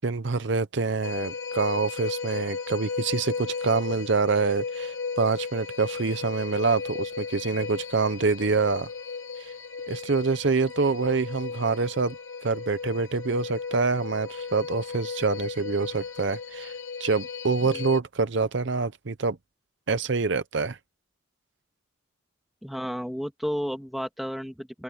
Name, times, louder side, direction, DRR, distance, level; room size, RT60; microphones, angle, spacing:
voice 1, 0.0-8.9 9.4-9.5 9.9-12.2 12.4-16.7 17.0-19.4 19.9-20.8, right 4 dB, 55° right, 0.7 m, -26 dB
sound 1, 1.0-18.0, left 5 dB, 80° left, 2.3 m, -35 dB
voice 2, 22.6-24.8, equal, ahead, 2.5 m, -32 dB
open air
head